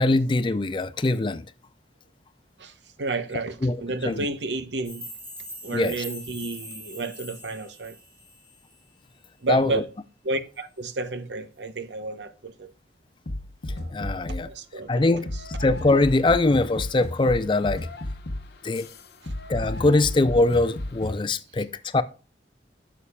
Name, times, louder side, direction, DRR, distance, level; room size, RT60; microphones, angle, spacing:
voice 1, 0.0-1.4 3.6-3.8 4.1-4.2 5.7-5.9 9.5-9.8 13.9-14.5 14.9-15.3 15.6-17.9 18.6-18.9 19.5-22.0, left 2 dB, 25° left, 0.4 m, -22 dB
voice 2, 2.6-5.1 5.6-8.0 9.4-9.9 10.2-12.7 13.7-13.9 14.3-15.4 19.2-19.3, right 3 dB, 80° right, 0.9 m, -31 dB
sound 1, 4.8-8.8, equal, 15° right, 3.7 m, -42 dB
sound 2, 13.3-14.6 15.3-21.2, left 1 dB, 65° left, 0.9 m, -34 dB
11.0 x 7.0 x 2.3 m
head